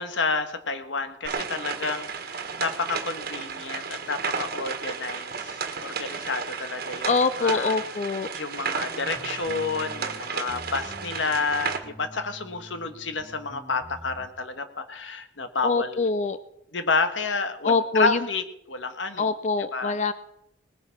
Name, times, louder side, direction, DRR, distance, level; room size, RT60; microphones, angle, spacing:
voice 1, 0.0-7.1 7.4-7.7 8.3-16.0 16.7-18.4 18.7-19.3 19.7-19.9, left 4 dB, 90° left, 9 dB, 1.4 m, -30 dB
sound 1, 1.2-11.8, right 5 dB, 55° right, 1.5 m, -33 dB
voice 2, 7.0-8.3 15.6-16.4 17.6-18.3 19.2-20.1, left 4 dB, 40° left, 13 dB, 0.5 m, -24 dB
sound 2, 8.9-10.2 10.5-14.3, equal, 5° left, 1.7 m, -46 dB
19.5 x 8.3 x 5.9 m, 0.83 s
head